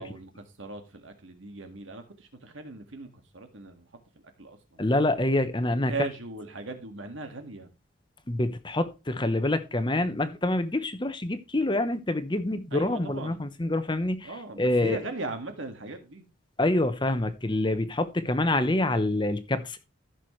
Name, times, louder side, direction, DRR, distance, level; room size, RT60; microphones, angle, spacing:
voice 1, 0.0-3.9 4.4-4.8 5.7-7.7 12.7-13.4 14.2-16.3, right 2 dB, 80° right, 1.9 m, -39 dB
voice 2, 4.8-5.9 8.3-14.3 14.6-15.0 16.6-19.8, left 1 dB, 25° left, 0.9 m, -26 dB
14.5 x 6.3 x 3.2 m
head